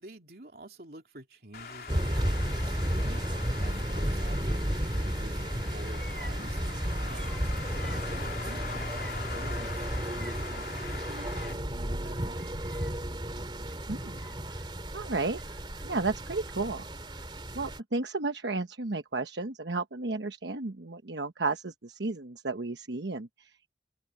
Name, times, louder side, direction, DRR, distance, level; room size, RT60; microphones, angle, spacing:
voice 1, 0.0-7.7 7.9-12.6 17.5-17.7, right 1 dB, 55° right, 3.6 m, -49 dB
Traffic noise roadway noise, 1.5-11.5, left 5 dB, 55° left, 3.8 m, -42 dB
sound 1, 1.9-17.8, equal, 25° right, 2.4 m, -33 dB
Bird vocalization bird call bird song, 5.5-10.5 10.8-13.2 13.6-14.6 15.3-16.4, left 1 dB, 5° left, 3.0 m, -53 dB
voice 2, 13.9-14.2 14.5-14.7 14.9-15.4 15.8-17.3 17.5-23.7, right 3 dB, 75° right, 1.1 m, -33 dB
head